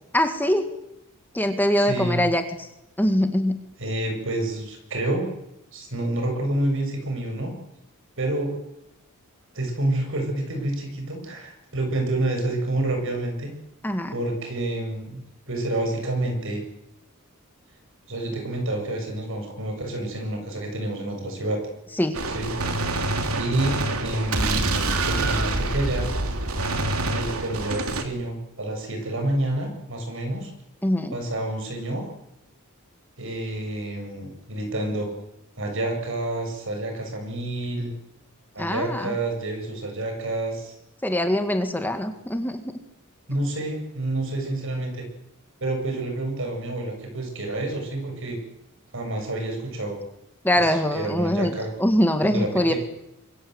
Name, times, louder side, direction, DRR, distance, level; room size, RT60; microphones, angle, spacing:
voice 1, 0.1-0.7 1.3-2.7 3.0-3.6 13.8-14.2 22.0-22.2 30.8-31.2 38.6-39.2 41.0-42.8 50.4-51.5 51.8-52.7, left 1 dB, 10° left, 7 dB, 1.9 m, -23 dB
voice 2, 1.9-2.2 3.8-5.3 5.7-7.5 8.2-8.5 9.5-13.5 14.1-16.6 18.1-21.6 22.3-22.5 23.4-26.1 27.1-30.5 31.1-32.0 33.2-35.1 35.6-37.9 38.5-40.7 43.3-45.0 45.6-48.4 48.9-50.0 50.6-51.7 52.2-52.8, right 1 dB, 65° right, 4 dB, 7.5 m, -28 dB
Gunshot gunfire, 22.1-28.0, right 2 dB, 85° right, 2.9 m, -26 dB
25.5 x 23.5 x 8.1 m, 0.83 s
head